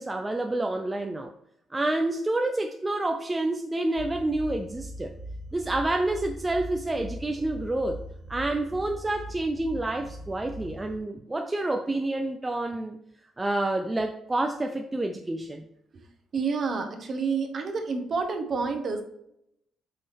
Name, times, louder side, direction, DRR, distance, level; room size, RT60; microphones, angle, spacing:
voice 1, 0.0-1.3 1.7-5.1 5.5-8.0 8.3-13.0 13.4-15.6, right 2 dB, 10° right, 5 dB, 0.4 m, -28 dB
sound 1, 3.9-11.0, right 1 dB, 85° right, 1.4 m, -41 dB
voice 2, 16.3-19.0, right 4 dB, 40° right, 5 dB, 1.1 m, -29 dB
8.2 x 5.5 x 3.4 m, 0.78 s
cardioid pair, 165°, 0 cm